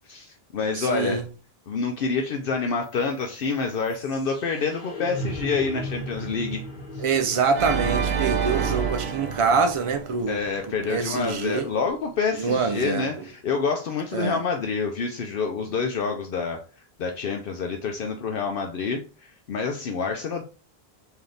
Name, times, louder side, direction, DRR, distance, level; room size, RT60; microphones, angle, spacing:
voice 1, 0.1-1.2 1.7-6.6 10.3-16.6 17.0-19.0 19.5-20.4, left 5 dB, 65° left, 0.7 m, -27 dB
voice 2, 0.7-1.2 7.0-10.4 10.9-11.7 12.3-13.2 14.1-14.4, right 5 dB, 45° right, 0.4 m, -25 dB
sound 1, 2.8-12.9, equal, 50° left, 1.1 m, -39 dB
Organ, 7.5-10.7, right 6 dB, 75° right, 1.0 m, -27 dB
3.9 x 2.8 x 3.2 m
omnidirectional pair, 1.0 m